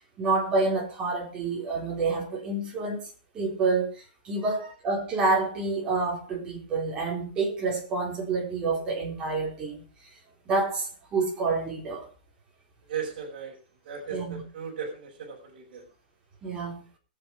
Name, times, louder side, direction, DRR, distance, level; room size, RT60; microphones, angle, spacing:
voice 1, 0.2-3.1 3.3-3.9 4.2-9.8 10.5-12.1 14.1-14.4 16.4-16.8, right 3 dB, 15° right, 4.2 m, -28 dB
voice 2, 4.4-4.7 12.9-13.6 13.8-15.8, right 6 dB, 50° right, 5.5 m, -37 dB
21.5 x 7.6 x 4.8 m
supercardioid pair, 170°, 5 cm